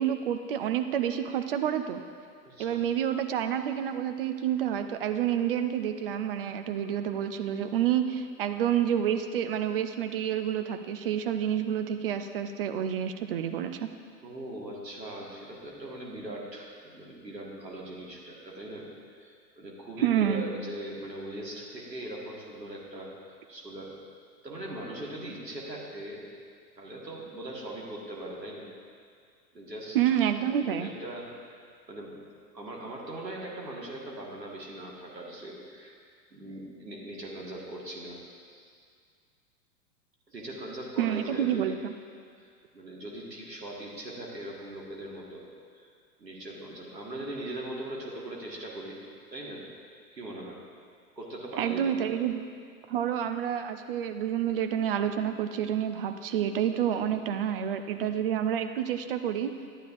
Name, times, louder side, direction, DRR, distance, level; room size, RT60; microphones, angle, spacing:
voice 1, 0.0-2.0 2.6-13.9 20.0-20.4 29.9-30.9 41.0-41.9 51.6-52.4 52.9-59.5, right 9 dB, 40° right, 8 dB, 0.4 m, -28 dB
voice 2, 2.4-2.8 14.2-23.9 24.4-26.2 26.8-28.7 29.5-30.2 30.7-32.1 32.5-35.9 36.3-38.2 38.5-38.6 40.3-41.8 42.4-45.5 45.7-45.9 46.2-49.0 49.3-49.6 50.1-50.6 51.2-52.1 56.9-57.1, right 1 dB, 90° right, -3 dB, 1.8 m, -40 dB
11.5 x 9.0 x 2.5 m, 2.2 s
figure-of-eight pair, 100°, 49 cm